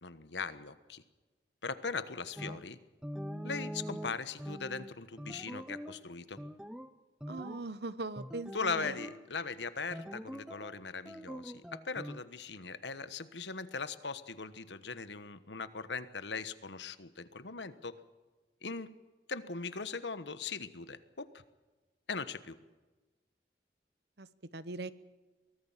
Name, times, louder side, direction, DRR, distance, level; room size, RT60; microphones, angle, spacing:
voice 1, 0.0-1.0 1.6-2.8 3.4-6.4 8.5-17.9 18.6-18.9 19.3-21.3 22.1-22.5, left 4 dB, 85° left, 13 dB, 1.3 m, -39 dB
sound 1, 2.4-2.6 3.0-6.0 6.4-6.9 7.2-7.7 8.2-9.2 9.9-10.8 11.0-12.2, equal, 5° right, 0.8 m, -43 dB
voice 2, 7.3-9.0 24.2-24.9, right 2 dB, 70° right, 15 dB, 1.0 m, -41 dB
23.5 x 18.0 x 7.4 m, 1.2 s
head